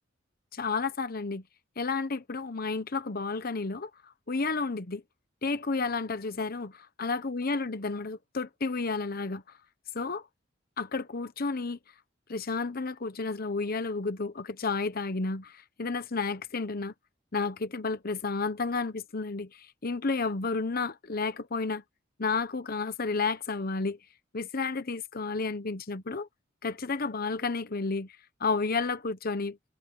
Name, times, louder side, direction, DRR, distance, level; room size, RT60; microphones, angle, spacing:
voice 1, 0.5-1.4 1.8-3.9 4.3-5.0 5.4-9.4 9.9-10.2 10.8-11.8 12.3-16.9 17.3-21.8 22.2-24.0 24.3-26.3 26.6-29.6, left 4 dB, 50° left, 1.0 m, -31 dB
head